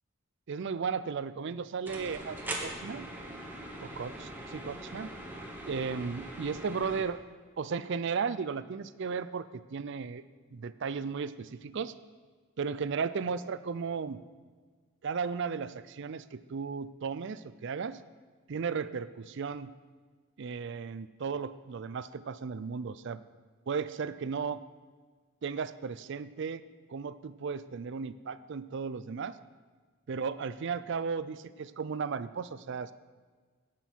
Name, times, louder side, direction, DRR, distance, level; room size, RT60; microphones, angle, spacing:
voice 1, 0.5-3.1 3.8-5.1 5.7-7.2 7.6-10.2 10.5-11.9 12.6-14.2 15.0-18.0 18.5-19.7 20.4-23.2 23.7-24.6 25.4-26.6 26.9-29.4 30.1-32.9, right 5 dB, 55° right, 15 dB, 0.4 m, -35 dB
sound 1, 1.8-7.0, right 1 dB, 10° right, 1.2 m, -41 dB
17.0 x 6.1 x 4.5 m, 1.5 s
head